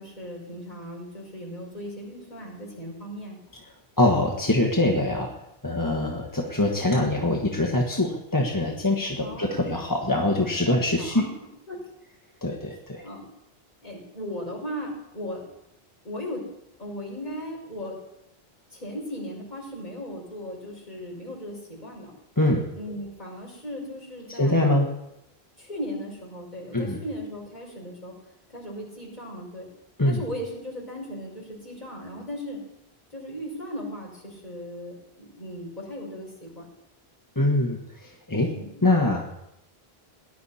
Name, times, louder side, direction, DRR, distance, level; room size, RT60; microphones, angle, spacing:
voice 1, 0.0-3.4 9.2-9.5 11.0-11.3 11.7-11.8 13.0-13.2 13.8-15.4 16.0-16.4 16.8-17.9 18.7-22.1 22.7-24.8 25.6-28.1 28.5-29.7 30.0-32.6 33.1-36.7 38.5-38.7, equal, 45° left, -3 dB, 5.5 m, -37 dB
voice 2, 4.0-5.3 5.6-11.3 12.4-13.0 22.4-22.7 24.3-24.9 26.7-27.0 30.0-30.2 37.3-38.5 38.8-39.4, left 1 dB, 20° left, 0 dB, 1.3 m, -23 dB
19.0 x 11.0 x 4.3 m, 0.86 s
omnidirectional pair, 1.1 m